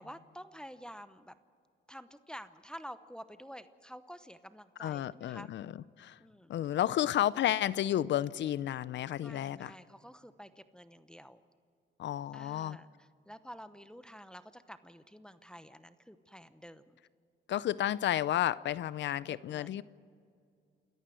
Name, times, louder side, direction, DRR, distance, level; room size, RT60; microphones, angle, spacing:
voice 1, 0.0-1.4 1.9-5.5 6.2-6.5 9.2-11.4 12.3-17.0 19.3-19.8, equal, 5° left, 0.9 m, -50 dB
voice 2, 4.8-5.7 6.0-6.2 6.5-9.7 12.0-12.8 17.5-19.8, left 12 dB, 65° left, 0.6 m, -32 dB
29.0 x 14.0 x 9.2 m
cardioid pair, 90°, 20 cm